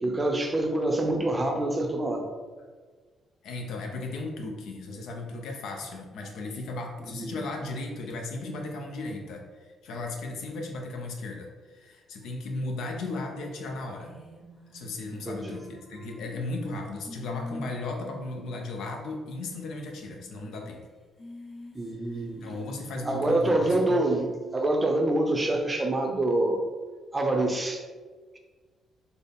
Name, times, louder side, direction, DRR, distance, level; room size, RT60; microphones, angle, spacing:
voice 1, 0.0-2.3 7.0-7.4 15.2-15.6 21.7-22.4 23.0-26.6 27.1-27.8, right 1 dB, 20° right, 2 dB, 0.5 m, -26 dB
voice 2, 3.4-14.1 14.7-20.8 22.2-24.1, left 2 dB, 80° left, 2 dB, 0.6 m, -36 dB
sound 1, 14.0-18.9 19.2-19.3 19.5-19.6 20.2-20.7 21.1-24.7, equal, 45° left, 0.9 m, -44 dB
4.0 x 2.0 x 3.4 m, 1.4 s
cardioid pair, 90°, 0 cm